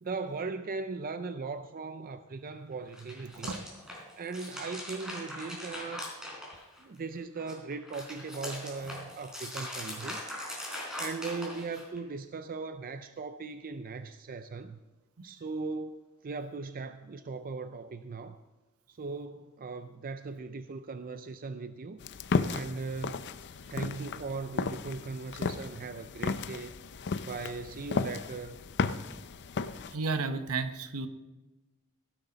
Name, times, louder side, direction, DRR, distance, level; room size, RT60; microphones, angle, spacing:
voice 1, 0.0-3.5 4.2-6.1 6.8-14.8 15.2-18.4 18.9-22.0 22.3-23.3 23.7-26.7 27.2-28.6, right 4 dB, 40° right, 0.5 m, -39 dB
sound 1, 2.8-7.0 7.4-12.0, left 1 dB, 5° right, 4.1 m, -41 dB
sound 2, 22.0-29.9, left 4 dB, 50° left, 0.5 m, -34 dB
voice 2, 29.9-31.1, right 4 dB, 70° right, 0.9 m, -32 dB
16.0 x 11.5 x 4.0 m
head